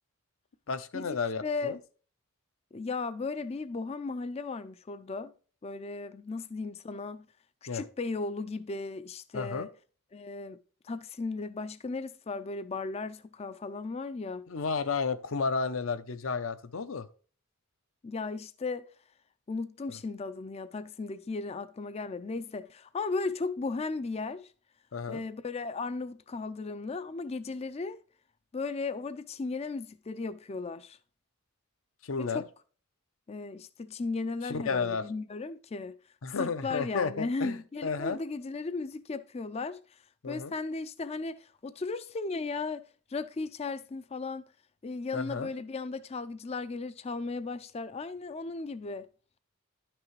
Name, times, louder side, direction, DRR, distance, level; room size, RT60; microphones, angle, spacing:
voice 1, 0.7-1.8 7.7-7.8 9.3-9.7 14.5-17.1 19.9-20.0 24.9-25.2 32.0-32.4 34.4-35.0 36.2-38.2 40.2-40.5 45.1-45.5, left 5 dB, 65° left, 0.6 m, -32 dB
voice 2, 1.4-1.8 2.7-5.3 5.6-7.3 7.6-9.7 10.1-10.6 10.8-14.5 18.0-18.9 19.5-24.5 25.1-28.0 28.5-31.0 32.2-32.4 33.3-36.0 36.4-39.8 40.2-42.8 43.1-44.5 44.8-49.1, left 3 dB, 30° left, 0.4 m, -36 dB
11.0 x 6.0 x 3.2 m
head